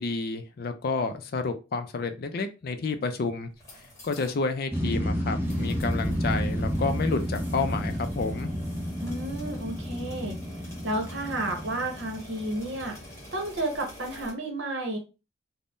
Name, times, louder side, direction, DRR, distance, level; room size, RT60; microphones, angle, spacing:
voice 1, 0.0-3.5 4.0-8.5, left 4 dB, 50° left, 8 dB, 0.4 m, -30 dB
sound 1, 3.5-4.4 4.7-4.8 5.4-14.3, left 1 dB, 15° left, 1.0 m, -48 dB
sound 2, 4.7-13.4, equal, 10° right, 0.5 m, -31 dB
voice 2, 9.0-10.4 10.8-13.0 13.3-15.0, right 1 dB, 70° right, 3 dB, 0.9 m, -31 dB
2.6 x 2.1 x 3.5 m, 0.30 s
head